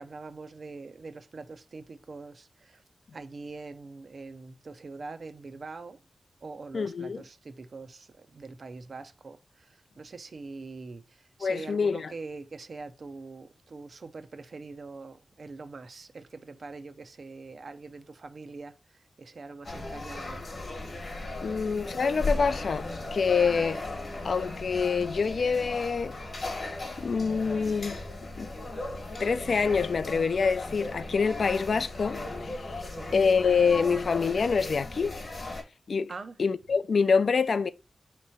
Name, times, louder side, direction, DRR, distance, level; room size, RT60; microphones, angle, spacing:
voice 1, 0.0-2.8 3.1-6.0 6.4-20.5 32.9-33.2 36.1-36.4, right 3 dB, 55° right, 0.4 m, -43 dB
voice 2, 6.7-7.2 11.4-12.1 21.4-23.8 24.2-26.2 27.0-28.0 28.4-28.5 29.2-32.8 33.1-35.2 35.9-36.1 36.4-37.7, left 5 dB, 65° left, 0.3 m, -26 dB
sound 1, 19.6-35.6, left 2 dB, 50° left, 1.1 m, -37 dB
3.5 x 3.0 x 4.2 m
wide cardioid pair, 110°, 0 cm